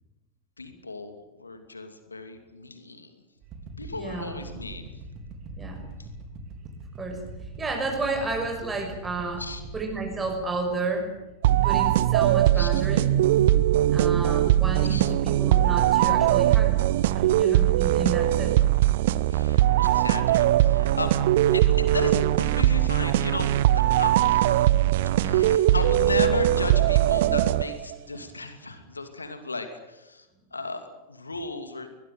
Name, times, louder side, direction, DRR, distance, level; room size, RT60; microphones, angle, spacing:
voice 1, 0.6-3.2 3.8-4.9 6.0-6.1 9.4-9.6 12.5-12.7 14.8-15.1 19.3-21.1 21.5-24.7 25.2-31.9, left 3 dB, 80° left, 8 dB, 2.6 m, -35 dB
sound 1, 3.4-11.6, right 2 dB, 35° right, 4.3 m, -42 dB
voice 2, 3.9-4.3 5.6-5.8 7.0-7.2 7.6-9.4 9.7-11.1 11.6-13.1 13.9-18.6, right 3 dB, 15° right, 3 dB, 6.2 m, -31 dB
sound 2, 11.4-27.9, right 13 dB, 55° right, 0.9 m, -21 dB
21.5 x 21.5 x 9.4 m, 1.0 s
figure-of-eight pair, 90°, 0 cm